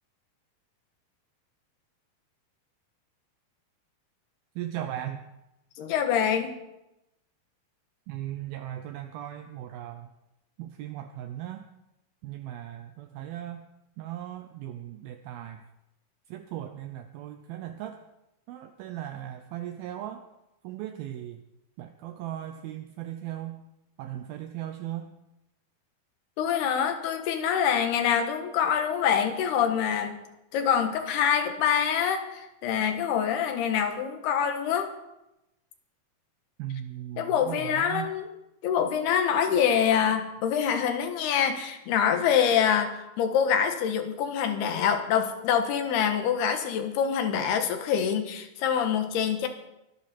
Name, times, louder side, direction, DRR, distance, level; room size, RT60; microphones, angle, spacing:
voice 1, 4.6-5.2 8.1-10.1 10.6-11.7 12.2-13.7 14.0-15.6 16.3-18.0 18.5-20.3 20.6-21.4 21.8-23.6 24.0-25.2 36.6-38.1, right 12 dB, 75° right, 7 dB, 2.5 m, -37 dB
voice 2, 5.8-6.5 26.4-30.2 30.5-34.9 37.2-38.3 38.6-49.5, left 8 dB, 85° left, 6 dB, 3.4 m, -25 dB
23.5 x 11.5 x 4.4 m, 0.90 s
omnidirectional pair, 4.5 m